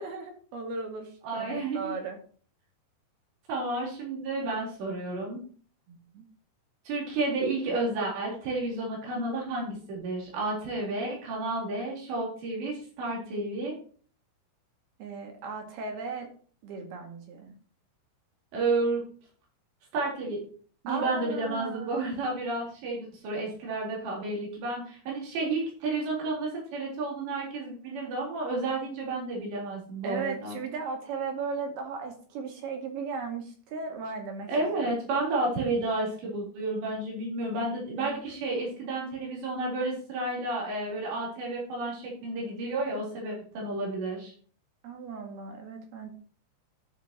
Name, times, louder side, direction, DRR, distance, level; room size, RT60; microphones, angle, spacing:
voice 1, 0.0-2.2 5.9-6.2 15.0-16.3 16.6-17.5 20.9-22.0 30.0-34.5 34.8-34.9 38.0-38.1 44.8-46.2, right 4 dB, 65° right, 2 dB, 4.0 m, -36 dB
voice 2, 1.2-2.0 3.5-5.4 6.9-13.7 18.5-19.0 19.9-20.4 20.8-30.6 34.5-44.3, right 2 dB, 85° right, -3 dB, 6.1 m, -31 dB
13.5 x 6.8 x 2.9 m, 0.44 s
omnidirectional pair, 4.9 m